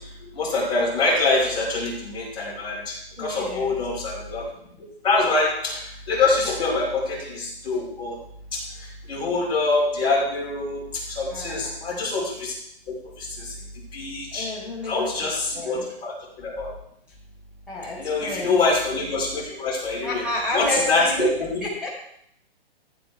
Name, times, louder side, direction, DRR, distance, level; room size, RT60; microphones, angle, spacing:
voice 1, 0.4-4.4 5.0-5.8 6.1-8.2 8.5-8.6 9.1-10.8 11.1-12.5 13.2-13.5 13.9-14.5 14.9-16.7 18.0-20.2 20.5-21.5, left 3 dB, 15° left, -6 dB, 5.4 m, -24 dB
voice 2, 3.2-3.8 11.3-11.7 14.3-15.1 15.5-15.8 17.7-18.5 20.0-21.3 21.6-21.9, equal, 5° right, -7 dB, 4.8 m, -29 dB
15.0 x 8.0 x 4.7 m, 0.72 s
hypercardioid pair, 155°, 31 cm